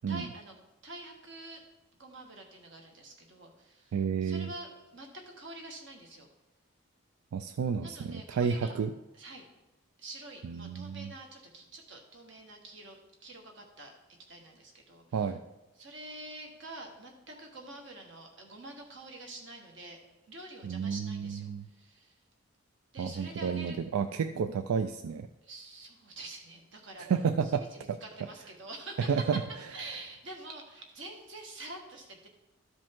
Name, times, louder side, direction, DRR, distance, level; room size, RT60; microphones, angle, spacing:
voice 1, 0.1-0.6 0.8-1.6 2.0-3.9 4.2-6.3 7.8-8.7 9.2-9.5 10.0-14.0 14.3-15.2 15.8-20.0 20.3-22.2 22.9-23.8 25.4-27.1 27.7-29.4 29.7-32.3, right 2 dB, 55° right, 2 dB, 1.5 m, -46 dB
voice 2, 3.9-4.5 7.3-8.9 10.4-11.1 15.1-15.4 20.6-21.7 23.0-25.3 27.0-27.6 27.9-28.0 29.1-29.4, right 6 dB, 90° right, 10 dB, 0.4 m, -31 dB
13.0 x 5.0 x 3.7 m, 1.0 s
head